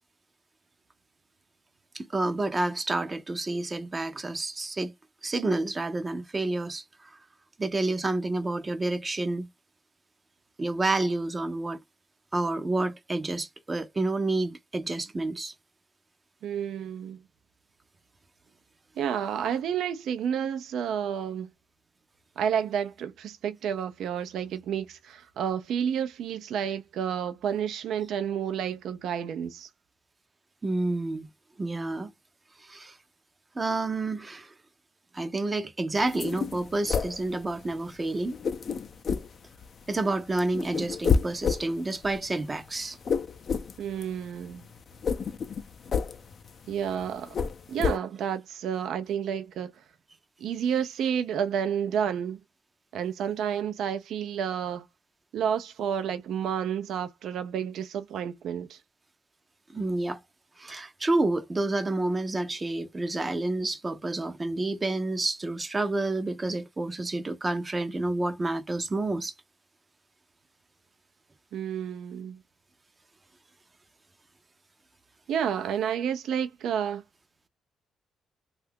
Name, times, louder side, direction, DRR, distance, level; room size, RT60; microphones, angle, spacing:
voice 1, 1.9-4.9 5.2-7.1 7.6-9.5 10.6-11.8 12.3-15.5 30.6-31.3 31.6-32.1 32.6-32.9 33.6-34.5 35.1-38.4 39.9-43.0 59.7-60.2 60.6-69.3, right 2 dB, 30° right, 0.6 m, -29 dB
voice 2, 16.4-17.2 19.0-21.5 22.4-29.7 43.8-44.7 46.7-47.4 47.7-49.7 50.4-52.4 52.9-54.9 55.3-58.8 71.5-72.4 75.3-77.0, right 8 dB, 75° right, 0.5 m, -30 dB
sound 1, 36.0-37.9 38.2-40.0 40.3-48.0, left 6 dB, 55° left, 0.5 m, -30 dB
2.7 x 2.3 x 3.4 m
supercardioid pair, 65°, 0 cm